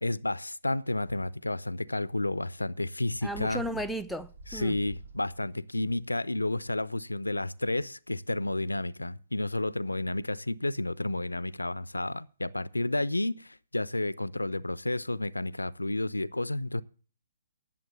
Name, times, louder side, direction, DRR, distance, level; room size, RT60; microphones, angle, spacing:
voice 1, 0.0-3.6 4.5-16.8, left 2 dB, 90° left, 0.5 m, -31 dB
Bird, 3.1-5.6, right 3 dB, 70° right, 2.7 m, -47 dB
voice 2, 3.2-4.8, equal, ahead, 0.5 m, -35 dB
11.0 x 7.3 x 7.1 m
figure-of-eight pair, 130°, 0 cm